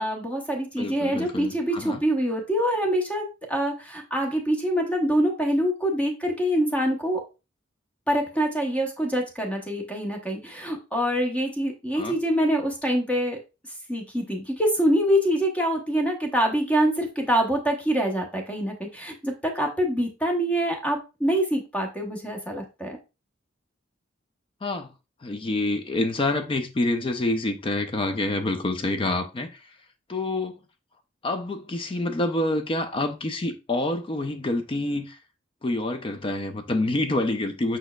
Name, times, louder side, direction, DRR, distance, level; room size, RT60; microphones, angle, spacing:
voice 1, 0.0-7.3 8.1-13.4 13.9-23.0, equal, 5° left, 0.8 m, -25 dB
voice 2, 0.8-2.0 12.0-12.2 24.6-24.9 25.2-29.6 30.1-30.6 31.2-35.2 35.6-37.8, left 2 dB, 30° left, 0.4 m, -27 dB
5.2 x 4.3 x 2.2 m
head